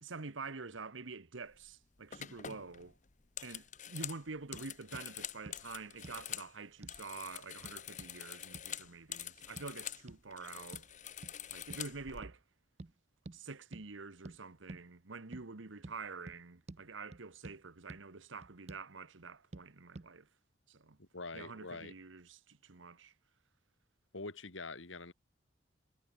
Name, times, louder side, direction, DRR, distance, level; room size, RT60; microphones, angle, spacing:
voice 1, 0.0-3.0 3.4-10.9 11.5-12.4 13.3-20.3 20.7-21.0 21.3-23.1, right 4 dB, 85° right, 1.3 m, -47 dB
sound 1, 1.5-1.7 2.1-6.5 6.8-10.0 10.3-12.2, left 10 dB, 40° left, 1.2 m, -46 dB
sound 2, 4.5-4.7 4.9-5.1 5.5-5.6 6.0-6.2 6.8-7.0 7.6-8.1 8.5-8.7 9.6-9.7 10.1-10.2 10.7-10.9 11.2-11.4 11.7-11.9 12.2-12.4 12.8-12.9 13.2-13.4 13.7-13.9 14.2-14.4 14.7-14.8 15.3-15.5 15.8-16.0 16.3-16.4 16.7-16.8 17.1-17.6 17.9-18.0 18.4-18.9 19.5-19.7 19.9-20.1, right 2 dB, 35° right, 0.6 m, -49 dB
voice 2, 21.0-21.9 24.1-25.1, left 3 dB, 85° left, 2.7 m, -45 dB
head